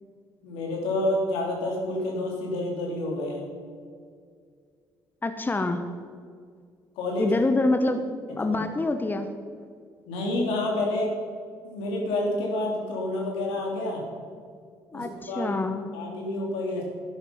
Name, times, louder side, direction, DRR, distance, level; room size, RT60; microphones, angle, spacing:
voice 1, 0.4-3.4 7.0-7.3 8.4-8.6 10.1-11.2 11.6-14.0 14.9-15.5 15.9-16.8, left 1 dB, 85° left, -1 dB, 3.3 m, -28 dB
voice 2, 5.2-5.8 7.2-9.3 14.9-15.9, left 2 dB, 20° left, 8 dB, 1.1 m, -26 dB
12.0 x 10.5 x 5.6 m, 2.1 s
supercardioid pair, 65°, 9 cm